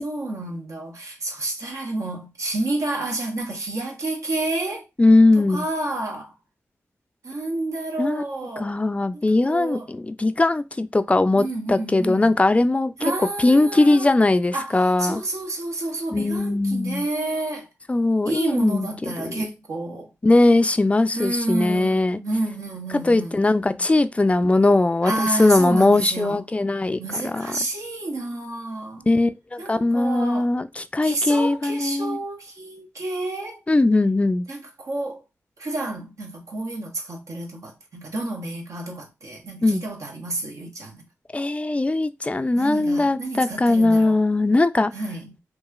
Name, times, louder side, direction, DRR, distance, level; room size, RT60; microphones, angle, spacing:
voice 1, 0.0-4.9 5.4-6.3 7.2-8.7 9.1-9.9 11.4-12.4 13.0-14.1 14.5-17.7 18.2-20.1 21.1-23.4 25.0-26.4 27.0-29.1 29.6-30.5 31.0-33.6 34.5-35.2 35.6-41.1 42.5-44.2 44.9-45.3, right 2 dB, 70° right, 0.9 m, -30 dB
voice 2, 5.0-5.6 8.0-8.2 8.6-12.9 13.4-15.2 16.1-17.0 17.9-18.9 19.2-19.5 20.2-22.2 22.9-27.5 29.1-32.2 33.7-34.5 39.6-39.8 41.3-44.9, left 2 dB, 20° left, 0.3 m, -20 dB
2.9 x 2.3 x 2.4 m
cardioid pair, 40°, 6 cm